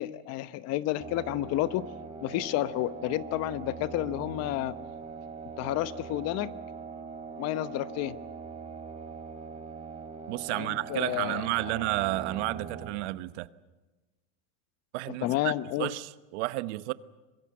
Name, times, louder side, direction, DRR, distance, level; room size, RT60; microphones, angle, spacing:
voice 1, 0.0-1.9 2.2-4.8 5.6-6.5 7.4-8.2 10.5-11.4 15.2-15.9, left 14 dB, 45° left, 0.9 m, -30 dB
sound 1, 1.0-12.9, right 5 dB, 20° right, 3.6 m, -42 dB
voice 2, 10.3-13.5 14.9-15.5 15.8-16.9, right 19 dB, 75° right, 1.1 m, -31 dB
26.0 x 21.5 x 7.7 m
supercardioid pair, 155°, 35 cm